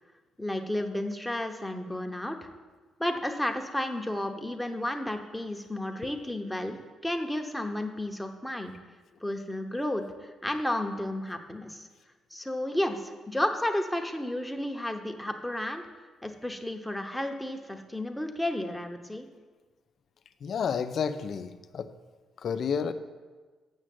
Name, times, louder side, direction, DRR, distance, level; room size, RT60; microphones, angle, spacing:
voice 1, 0.4-2.5 3.0-8.7 9.2-11.9 12.3-15.8 16.2-19.3, left 1 dB, 5° left, 4 dB, 0.9 m, -32 dB
voice 2, 20.4-21.9 22.4-22.9, left 6 dB, 60° left, 10 dB, 0.5 m, -30 dB
7.3 x 6.3 x 7.7 m, 1.4 s
cardioid pair, 90°, 0 cm